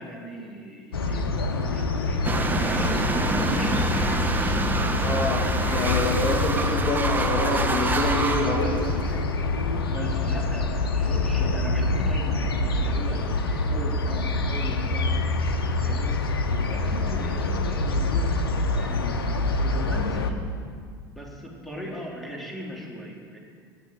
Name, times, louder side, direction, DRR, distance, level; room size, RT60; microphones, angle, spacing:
voice 1, 0.0-4.0 9.9-20.4 21.1-23.4, right 1 dB, ahead, -3 dB, 3.8 m, -38 dB
sound 1, 0.9-20.3, left 3 dB, 80° left, 1.0 m, -26 dB
sound 2, 2.2-9.2, right 3 dB, 15° right, 1.3 m, -27 dB
voice 2, 5.0-5.5 5.7-8.9, left 2 dB, 30° left, -2 dB, 2.4 m, -26 dB
16.5 x 6.9 x 9.0 m, 2.1 s
hypercardioid pair, 75°, 12 cm